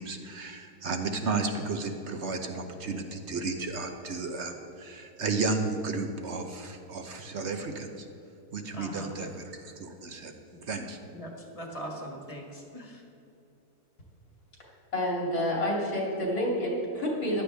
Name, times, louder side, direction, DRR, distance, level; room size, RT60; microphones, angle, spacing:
voice 1, 0.0-8.1 8.5-10.3 10.6-11.0, right 3 dB, 50° right, 5 dB, 1.0 m, -33 dB
voice 2, 8.7-9.3 11.1-13.0, equal, 20° left, 1 dB, 1.6 m, -41 dB
voice 3, 14.9-17.4, left 1 dB, 70° left, -3 dB, 3.3 m, -28 dB
15.0 x 11.5 x 3.4 m, 2.8 s
omnidirectional pair, 1.7 m